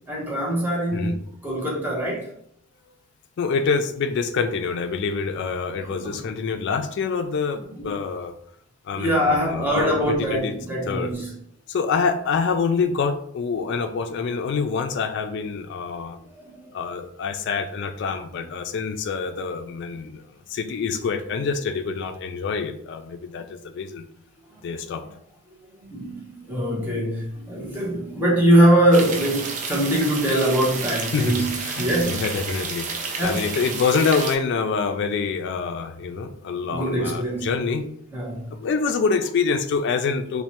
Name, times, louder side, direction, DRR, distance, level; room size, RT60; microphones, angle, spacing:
voice 1, 0.1-2.3 5.7-6.2 7.5-8.0 9.0-11.3 16.3-16.7 24.5-24.6 25.8-31.5 31.8-32.2 33.2-33.4 36.7-37.5 38.1-38.5, right 1 dB, 10° right, -4 dB, 0.8 m, -23 dB
voice 2, 3.4-8.3 8.8-10.5 10.9-11.1 11.7-16.2 16.7-20.2 20.5-24.1 24.6-25.0 31.1-37.9 38.5-40.4, left 5 dB, 55° left, 7 dB, 0.3 m, -26 dB
sound 1, 28.9-34.4, right 4 dB, 35° right, 0.4 m, -31 dB
3.1 x 2.1 x 2.9 m, 0.68 s
head